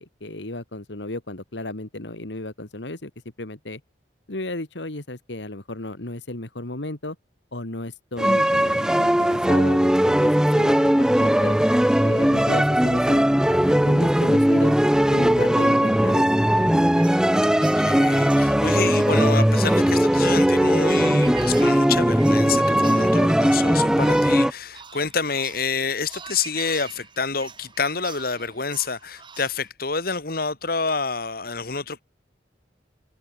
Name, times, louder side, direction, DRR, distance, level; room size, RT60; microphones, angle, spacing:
voice 1, 0.0-3.1 3.4-3.8 4.3-7.2 7.5-11.6 12.0-14.7 15.1-16.7, left 2 dB, 80° left, 2.3 m, -34 dB
sound 1, 8.2-24.5, equal, 5° right, 0.4 m, -19 dB
sound 2, 16.5-29.7, right 5 dB, 25° right, 4.7 m, -44 dB
voice 2, 17.6-32.0, left 5 dB, 55° left, 2.5 m, -28 dB
open air
head